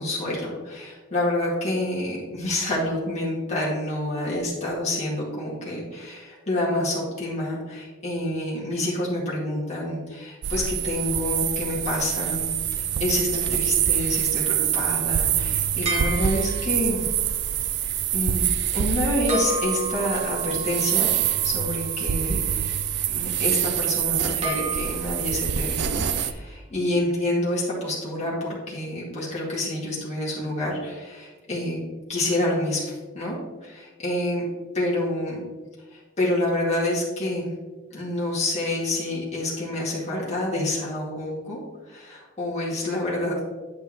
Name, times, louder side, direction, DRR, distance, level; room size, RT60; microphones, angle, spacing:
voice 1, 0.0-12.5 12.7-17.1 18.1-18.5 18.7-22.8 23.1-31.8 32.1-34.4 34.7-35.4 35.9-37.5 37.9-41.6 41.9-43.5, left 1 dB, 35° left, -6 dB, 2.1 m, -28 dB
sound 1, 10.4-26.3, right 10 dB, 60° right, 0.4 m, -25 dB
sound 2, 15.9-16.9 19.3-22.4 24.4-25.3, right 1 dB, 35° right, 1.5 m, -32 dB
9.3 x 5.4 x 3.0 m, 1.3 s
head